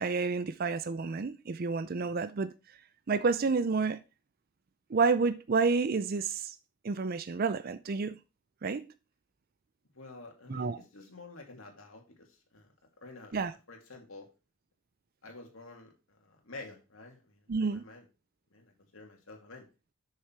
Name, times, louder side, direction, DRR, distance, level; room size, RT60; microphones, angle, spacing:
voice 1, 0.0-2.5 3.1-4.0 4.9-6.5 6.8-8.2 8.6-8.9 10.5-10.8 13.3-13.5 17.5-17.8, right 4 dB, 45° right, 0.5 m, -29 dB
voice 2, 9.9-12.7 13.0-13.3 13.7-14.3 15.2-18.0 18.5-19.7, left 2 dB, 70° left, 2.5 m, -50 dB
6.6 x 6.6 x 4.6 m
head